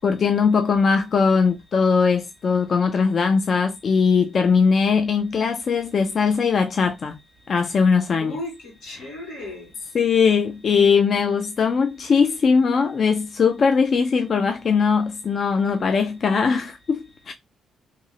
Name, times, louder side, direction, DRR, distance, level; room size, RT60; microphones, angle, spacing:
voice 1, 0.0-7.2 7.5-8.4 9.0-9.1 9.9-17.3, left 5 dB, 40° left, 0.3 m, -20 dB
voice 2, 8.2-9.8, left 2 dB, 85° left, 2.1 m, -35 dB
3.0 x 2.8 x 2.2 m
cardioid pair, 150°, 0 cm